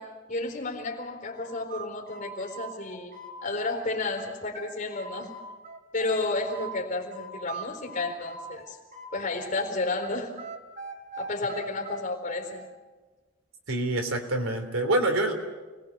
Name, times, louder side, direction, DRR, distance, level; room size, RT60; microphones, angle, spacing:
voice 1, 0.0-5.3 5.9-8.8 9.1-10.4 11.2-12.7, left 2 dB, 40° left, 2 dB, 4.2 m, -32 dB
sound 1, 1.3-3.9 4.2-6.7 7.1-9.7 10.0-12.7, right 3 dB, 40° right, 3.0 m, -41 dB
voice 2, 13.7-15.3, right 2 dB, 80° right, 5 dB, 3.4 m, -26 dB
29.5 x 21.0 x 6.8 m, 1.3 s
head